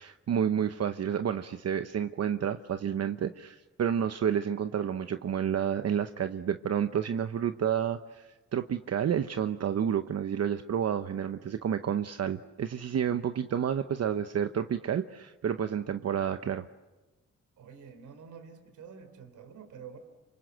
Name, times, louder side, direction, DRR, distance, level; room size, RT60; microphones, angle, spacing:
voice 1, 0.0-16.6, right 8 dB, 60° right, 9 dB, 0.9 m, -30 dB
voice 2, 17.6-20.0, right 6 dB, 85° right, 8 dB, 3.3 m, -48 dB
27.0 x 24.5 x 7.9 m, 1.2 s
cardioid pair, 70°, 29 cm